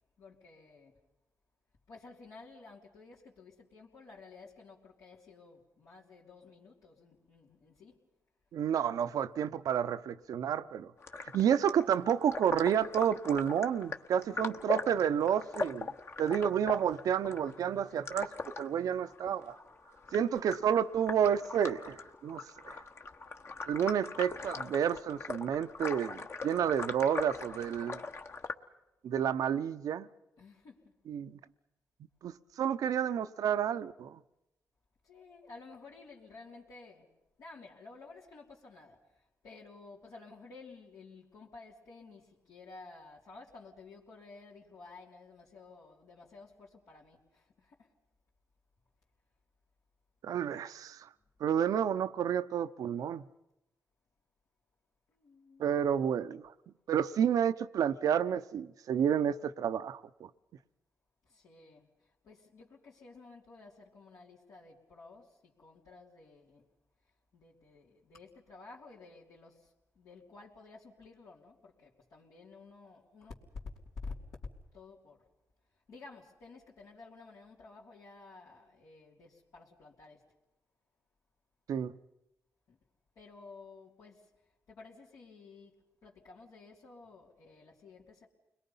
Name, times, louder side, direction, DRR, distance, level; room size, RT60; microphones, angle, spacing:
voice 1, 0.2-1.0 1.9-8.0 11.4-11.7 30.4-31.0 35.0-47.9 55.1-55.6 61.2-66.7 67.3-73.3 74.0-74.1 74.7-75.3 75.7-80.3 82.7-82.8 83.1-88.3, left 3 dB, 80° left, 3.2 m, -53 dB
voice 2, 8.5-10.9 11.3-15.9 16.2-19.5 20.1-22.8 23.7-28.0 29.0-30.1 31.1-31.4 32.2-34.2 50.2-51.1 51.4-53.2 55.6-56.5 56.9-60.3 81.7-81.9, right 8 dB, 80° right, 0.7 m, -30 dB
sound 1, 11.0-28.5, left 3 dB, 45° left, 1.4 m, -41 dB
30.0 x 22.0 x 5.6 m
cardioid pair, 65°, 6 cm